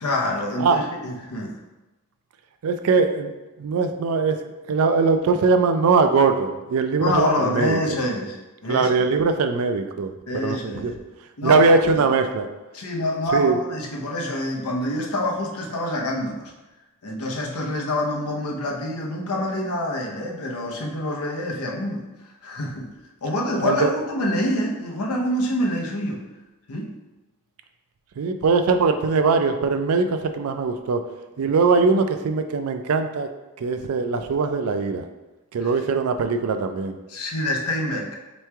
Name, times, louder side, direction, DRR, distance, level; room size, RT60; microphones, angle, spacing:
voice 1, 0.0-1.6 7.0-9.1 10.3-11.0 11.4-11.7 11.9-12.1 12.7-16.5 17.0-22.1 22.4-22.9 23.2-26.2 26.7-26.9 31.4-31.5 35.6-35.7 37.1-38.2, left 1 dB, 85° left, 0 dB, 0.7 m, -26 dB
voice 2, 2.6-4.4 4.7-7.8 8.7-10.9 11.4-12.4 13.3-13.6 23.6-23.9 28.2-31.0 31.4-33.3 33.6-35.0 35.5-37.0, right 4 dB, 80° right, 7 dB, 0.4 m, -21 dB
3.4 x 3.1 x 4.5 m, 1.1 s
head